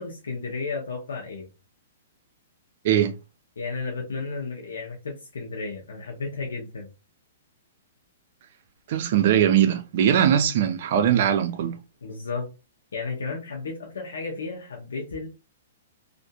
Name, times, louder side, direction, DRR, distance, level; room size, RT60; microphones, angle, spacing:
voice 1, 0.0-1.5 3.6-6.9 12.0-12.5 12.9-15.3, left 4 dB, 85° left, 0.8 m, -33 dB
voice 2, 8.9-11.8, right 9 dB, 55° right, 0.5 m, -21 dB
2.5 x 2.5 x 2.3 m
hypercardioid pair, 135°, 0 cm